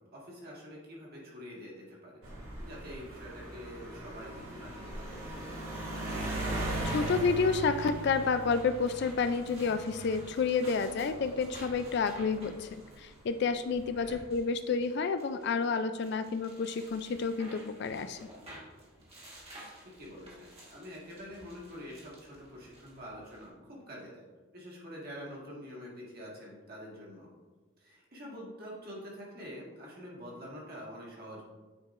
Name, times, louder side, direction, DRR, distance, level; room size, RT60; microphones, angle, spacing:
voice 1, 0.0-2.2 2.6-5.5 13.9-14.2 19.8-24.3 24.5-27.3 27.8-31.4, equal, 45° right, -4 dB, 1.7 m, -46 dB
sound 1, 2.2-12.9 13.7-14.1, right 1 dB, 90° right, 1.8 m, -39 dB
sound 2, 6.3-23.5, right 1 dB, 30° right, 1.5 m, -53 dB
voice 2, 6.9-18.2, left 5 dB, 50° left, 10 dB, 0.3 m, -30 dB
9.3 x 4.7 x 2.5 m, 1.3 s
head